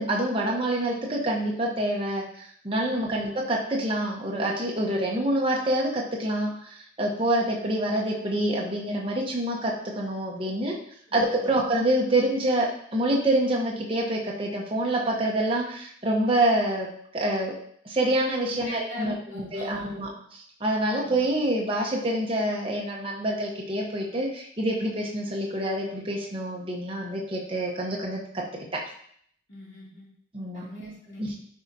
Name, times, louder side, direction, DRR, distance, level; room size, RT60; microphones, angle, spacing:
voice 1, 0.0-10.8 11.1-17.6 17.8-20.1 20.6-28.9 30.3-30.6 31.2-31.4, right 1 dB, 30° right, -2 dB, 1.1 m, -27 dB
voice 2, 11.1-11.6 18.5-20.1 20.9-21.3 29.5-30.1 30.5-31.3, left 1 dB, 90° left, -6 dB, 2.9 m, -41 dB
10.0 x 4.9 x 2.8 m, 0.63 s
head